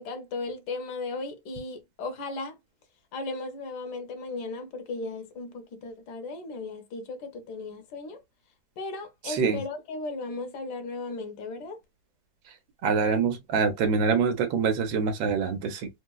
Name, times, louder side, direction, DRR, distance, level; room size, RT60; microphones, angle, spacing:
voice 1, 0.0-2.6 3.1-8.2 8.8-11.8, left 3 dB, 70° left, 1.3 m, -36 dB
voice 2, 9.3-9.6 12.8-15.9, right 5 dB, 90° right, 1.5 m, -25 dB
4.0 x 2.0 x 2.2 m
omnidirectional pair, 2.0 m